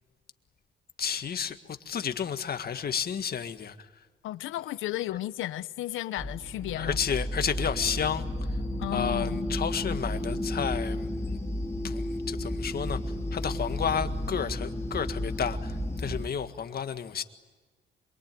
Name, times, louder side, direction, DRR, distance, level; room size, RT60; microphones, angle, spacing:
voice 1, 1.0-3.8 6.8-8.2 8.9-11.1 11.8-13.0 13.3-17.2, left 7 dB, 50° left, 1.8 m, -31 dB
voice 2, 4.2-7.0 8.8-9.5, left 14 dB, 90° left, 1.0 m, -34 dB
sound 1, 6.2-16.3, left 1 dB, 15° left, 3.6 m, -32 dB
27.0 x 22.5 x 9.3 m
cardioid pair, 90°, 20 cm